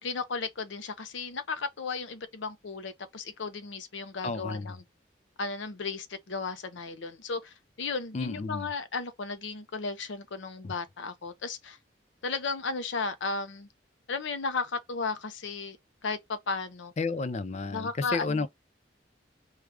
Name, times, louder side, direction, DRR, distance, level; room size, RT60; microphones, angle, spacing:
voice 1, 0.0-4.8 5.4-11.8 12.2-13.7 14.1-15.8 16.0-16.9 17.7-18.5, left 4 dB, 80° left, 0.6 m, -34 dB
voice 2, 4.2-4.8 8.1-8.7 10.6-10.7 17.0-18.5, left 3 dB, 35° left, 0.4 m, -32 dB
4.7 x 2.3 x 3.3 m
head